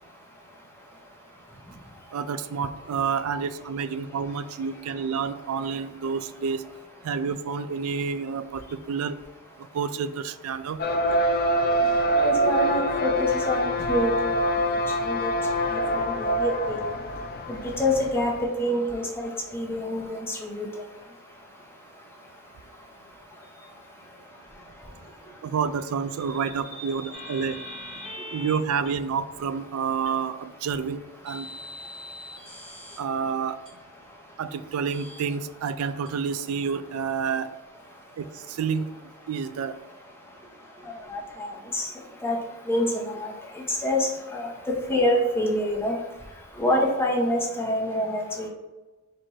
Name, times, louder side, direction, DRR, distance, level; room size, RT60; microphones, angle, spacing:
voice 1, 2.1-6.6 7.0-8.6 8.9-9.2 9.7-10.8 25.4-27.6 28.3-31.5 33.0-33.6 34.4-37.5 38.2-38.9 39.3-39.8, right 6 dB, 80° right, 13 dB, 0.3 m, -29 dB
sound 1, 10.8-18.3, right 1 dB, 45° left, 0.4 m, -25 dB
voice 2, 12.2-14.3 15.0-15.3 15.7-16.8 17.5-18.3 18.6-20.7 26.8-27.1 27.4-27.5 28.0-28.1 41.1-41.9 42.2-42.4 42.7-44.5 44.9-45.9 46.6-48.5, left 1 dB, 10° left, -2 dB, 0.9 m, -26 dB
sound 2, 27.1-28.6 28.8-28.9 30.0-30.1 31.2-33.0 33.6-33.7 34.8-35.2 36.0-36.1, left 1 dB, 25° right, 1.2 m, -41 dB
4.4 x 2.5 x 4.3 m, 1.1 s
head